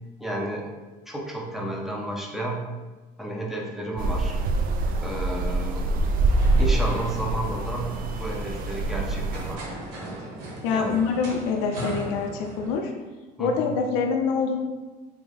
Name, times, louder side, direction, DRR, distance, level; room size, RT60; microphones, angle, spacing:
voice 1, 0.2-0.7 1.1-2.6 3.2-4.4 5.0-5.8 6.5-9.7 10.7-11.1 13.4-13.7, right 1 dB, ahead, -1 dB, 0.6 m, -32 dB
sound 1, 4.0-9.6, right 2 dB, 45° right, 0.4 m, -25 dB
sound 2, 4.7-12.8, right 1 dB, 85° right, 0.9 m, -39 dB
voice 2, 10.6-12.9 13.4-14.6, left 5 dB, 75° left, 3 dB, 0.5 m, -25 dB
3.5 x 2.1 x 3.4 m, 1.2 s
supercardioid pair, 90°, 21 cm